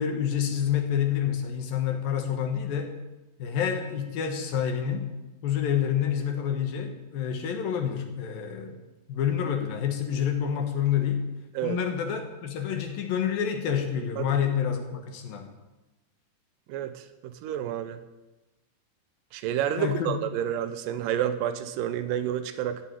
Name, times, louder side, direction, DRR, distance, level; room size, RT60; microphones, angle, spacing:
voice 1, 0.0-2.9 3.4-5.1 5.4-8.8 9.1-11.2 11.6-15.5 19.8-20.2, left 8 dB, 65° left, 5 dB, 2.9 m, -28 dB
voice 2, 16.7-18.0 19.3-22.8, right 10 dB, 85° right, 10 dB, 2.0 m, -30 dB
14.5 x 7.2 x 9.2 m, 1.0 s
omnidirectional pair, 4.8 m